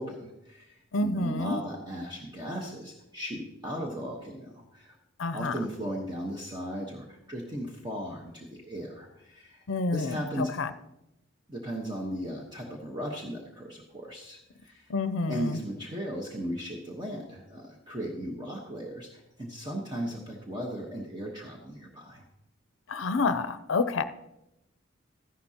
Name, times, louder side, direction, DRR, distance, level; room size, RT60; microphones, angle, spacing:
voice 1, 0.0-4.9 5.3-9.6 9.9-10.5 11.5-14.9 15.3-22.2, equal, 20° right, -1 dB, 1.1 m, -37 dB
voice 2, 0.9-1.6 5.2-5.6 9.7-10.7 14.9-15.6 22.9-24.0, left 3 dB, 75° left, 12 dB, 0.5 m, -28 dB
13.5 x 11.0 x 2.9 m, 0.88 s
head